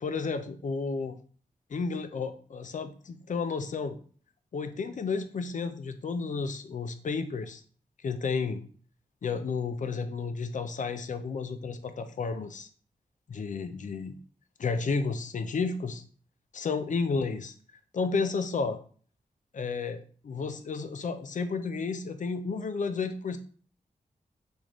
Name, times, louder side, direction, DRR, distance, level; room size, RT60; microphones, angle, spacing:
voice 1, 0.0-1.2 1.7-4.0 4.5-7.6 8.0-8.6 9.2-12.7 13.3-14.2 14.6-16.0 16.5-17.5 17.9-18.8 19.5-23.4, left 4 dB, 55° left, 9 dB, 0.5 m, -32 dB
3.5 x 2.6 x 3.0 m, 0.43 s
cardioid pair, 60°, 15 cm